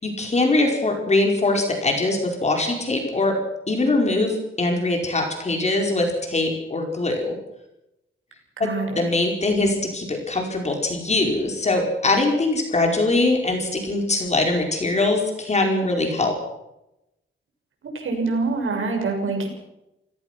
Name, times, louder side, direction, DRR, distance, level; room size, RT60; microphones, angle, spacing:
voice 1, 0.0-3.4 3.7-7.3 8.6-8.7 9.0-16.4, left 2 dB, 30° left, 2 dB, 4.9 m, -22 dB
voice 2, 8.6-9.0 17.9-19.5, right 3 dB, 75° right, 2 dB, 6.6 m, -25 dB
29.5 x 17.0 x 6.2 m, 0.88 s
wide cardioid pair, 150°, 21 cm